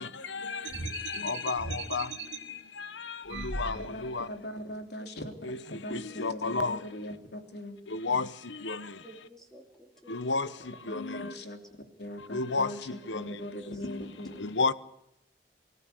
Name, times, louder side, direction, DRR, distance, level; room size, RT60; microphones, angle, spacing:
voice 1, 0.0-4.3 5.4-6.8 7.9-9.0 10.1-11.3 12.3-13.4 13.8-14.0 14.4-14.7, left 4 dB, 90° left, 1.2 m, -33 dB
sound 1, 0.6-2.4 3.3-4.2, right 3 dB, 80° right, 1.9 m, -38 dB
voice 2, 3.7-7.8 10.9-11.6 12.0-14.4, left 1 dB, 65° left, 3.4 m, -40 dB
voice 3, 9.0-10.5 11.3-11.5 13.2-13.8, right 1 dB, 5° left, 2.8 m, -54 dB
24.5 x 15.0 x 8.4 m
head